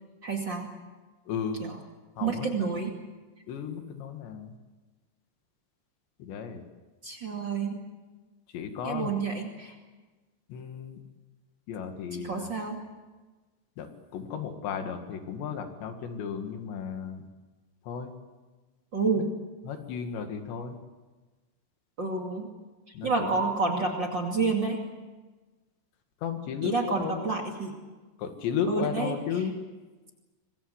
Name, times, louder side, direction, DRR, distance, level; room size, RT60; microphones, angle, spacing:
voice 1, 0.2-0.7 1.6-1.7 2.2-2.9 7.0-7.8 8.8-9.7 12.2-12.8 18.9-19.3 22.0-22.5 23.0-24.8 26.6-27.7 28.7-29.2, right 4 dB, 35° right, 1 dB, 2.5 m, -29 dB
voice 2, 1.3-1.7 2.2-2.5 3.5-4.6 6.2-6.6 8.5-9.1 10.5-11.0 11.7-12.5 13.8-17.2 17.9-18.1 19.2-19.3 19.6-20.8 22.9-23.4 26.2-27.2 28.2-29.6, left 7 dB, 90° left, 6 dB, 4.3 m, -34 dB
25.5 x 22.5 x 8.1 m, 1.3 s
omnidirectional pair, 4.9 m